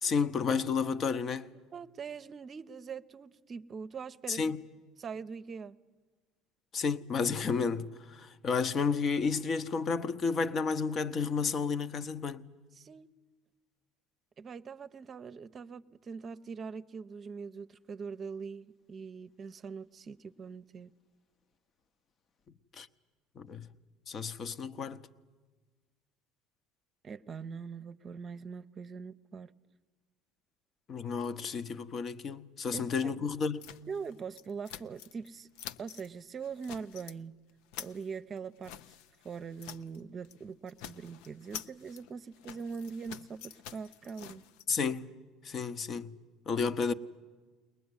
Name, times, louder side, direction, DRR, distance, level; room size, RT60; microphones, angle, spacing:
voice 1, 0.0-1.5 4.3-4.6 6.7-12.4 22.8-22.9 23.4-23.7 24.1-25.0 30.9-33.7 44.7-45.1 45.4-46.2 46.5-46.9, left 5 dB, 40° left, 0.9 m, -31 dB
voice 2, 1.7-4.5 5.0-5.8 12.8-13.1 14.4-20.9 27.0-29.5 32.7-33.1 33.9-35.5 35.8-37.4 37.8-38.7 39.2-44.4, right 5 dB, 40° right, 0.7 m, -42 dB
sound 1, 33.6-35.3 35.5-36.1 36.4-37.2 37.5-40.0 40.2-40.4 40.7-44.6, left 10 dB, 75° left, 0.6 m, -48 dB
22.0 x 20.0 x 9.7 m
supercardioid pair, 85°, 0 cm